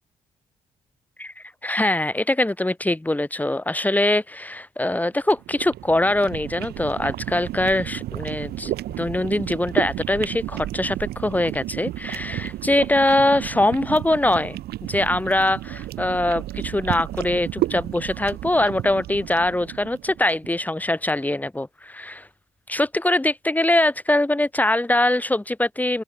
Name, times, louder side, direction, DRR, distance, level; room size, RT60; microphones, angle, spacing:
voice 1, 1.6-14.6 14.9-22.3 22.7-26.0, left 1 dB, 10° left, 0.9 m, -22 dB
sound 1, 5.2-20.5, right 14 dB, 65° right, 0.7 m, -32 dB
open air
hypercardioid pair, 40°, 17 cm